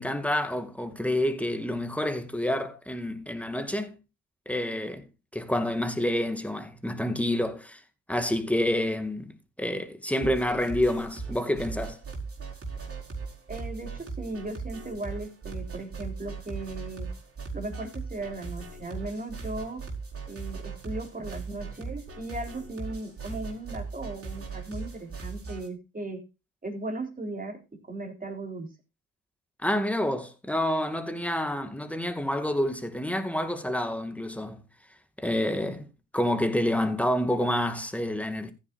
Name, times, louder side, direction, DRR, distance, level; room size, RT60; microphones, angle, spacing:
voice 1, 0.0-4.0 4.5-5.0 5.3-7.8 8.1-12.0 29.6-34.6 35.2-38.5, left 1 dB, 5° left, 2.1 m, -28 dB
sound 1, 10.2-25.7, right 4 dB, 45° right, 4.9 m, -38 dB
voice 2, 13.5-17.1 17.5-19.8 20.3-26.2 26.6-27.6 27.9-28.7, right 2 dB, 25° right, 3.8 m, -37 dB
15.0 x 10.0 x 2.5 m
cardioid pair, 70°, 32 cm